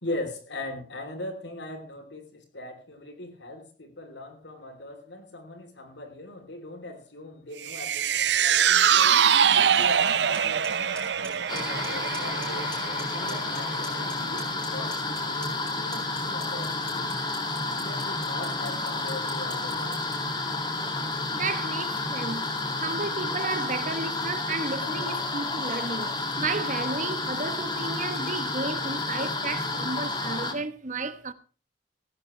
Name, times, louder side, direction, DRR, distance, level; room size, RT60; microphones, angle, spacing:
voice 1, 0.0-9.2 9.5-12.7 13.1-17.2 17.8-20.0, left 1 dB, 85° left, 3.8 m, -40 dB
sound 1, 7.6-14.1 14.4-14.5, right 8 dB, 75° right, 0.7 m, -24 dB
Clock, 10.3-10.4 10.6-11.0 11.2-11.9 12.1-12.4 12.7-13.6 13.8-20.1, equal, 5° left, 5.3 m, -42 dB
sound 2, 11.5-30.5, left 2 dB, 25° left, 2.5 m, -30 dB
voice 2, 21.3-22.5 22.8-31.3, right 3 dB, 45° right, 1.2 m, -33 dB
17.0 x 15.0 x 3.4 m
head